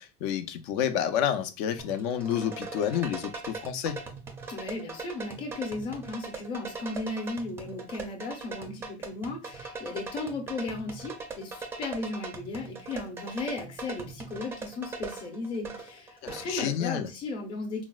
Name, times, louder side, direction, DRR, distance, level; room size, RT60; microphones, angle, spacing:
voice 1, 0.0-4.0 16.2-17.1, left 9 dB, 65° left, 0.4 m, -29 dB
sound 1, 1.8-16.7, right 4 dB, 15° right, 0.4 m, -40 dB
voice 2, 4.5-17.8, left 3 dB, 30° left, 0.6 m, -36 dB
4.0 x 2.0 x 2.3 m
cardioid pair, 175°, 17 cm